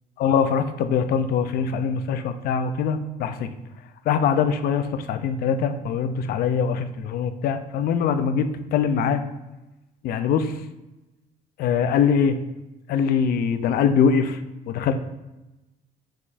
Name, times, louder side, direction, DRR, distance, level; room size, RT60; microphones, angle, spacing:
voice 1, 0.2-3.5 4.1-9.2 10.0-10.6 11.6-12.4 12.9-14.4 14.7-15.0, left 6 dB, 65° left, 9 dB, 0.4 m, -22 dB
4.3 x 3.5 x 2.5 m, 1.0 s
cardioid pair, 110°, 17 cm